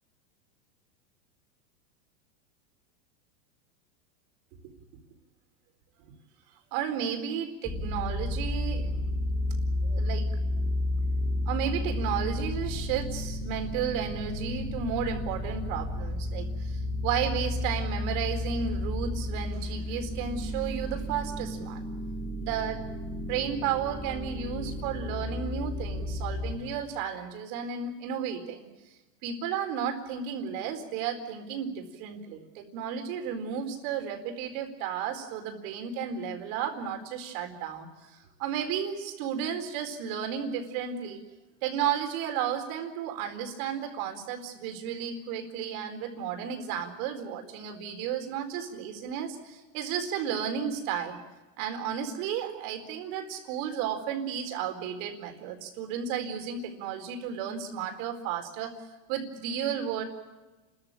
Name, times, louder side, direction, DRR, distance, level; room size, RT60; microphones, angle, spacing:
voice 1, 6.7-8.9 9.8-10.3 11.5-21.9 22.4-22.8 23.3-28.7 29.2-41.2 41.6-51.2 51.6-58.8 59.1-60.0, right 8 dB, 55° right, 5 dB, 4.5 m, -33 dB
sound 1, 7.6-26.5, left 1 dB, 10° left, 1.8 m, -32 dB
30.0 x 14.0 x 9.1 m, 1.2 s
supercardioid pair, 140°, 49 cm